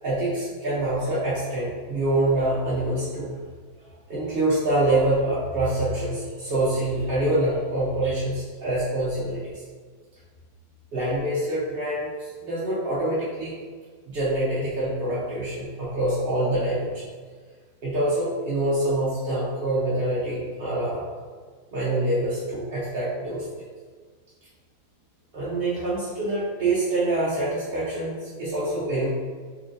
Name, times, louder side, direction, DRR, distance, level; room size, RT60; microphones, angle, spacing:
voice 1, 0.0-3.3 4.1-9.6 10.9-13.5 14.1-17.0 17.8-21.0 21.7-23.4 25.3-29.1, right 1 dB, 60° right, -9 dB, 0.5 m, -25 dB
4.2 x 3.3 x 2.6 m, 1.5 s
omnidirectional pair, 2.0 m